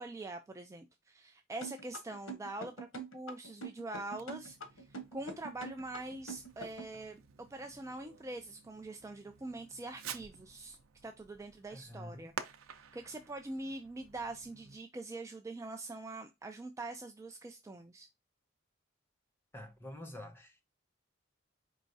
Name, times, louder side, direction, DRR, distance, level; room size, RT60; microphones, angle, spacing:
voice 1, 0.0-7.2 7.5-10.8 11.0-12.3 12.9-18.1, right 2 dB, 15° right, 0.3 m, -44 dB
sound 1, 1.6-7.0, right 2 dB, 80° left, 1.0 m, -44 dB
Fireworks, 4.1-14.8, right 7 dB, 85° right, 0.5 m, -51 dB
voice 2, 11.7-12.3 19.5-20.6, left 1 dB, 10° left, 0.9 m, -47 dB
4.6 x 3.0 x 2.6 m
head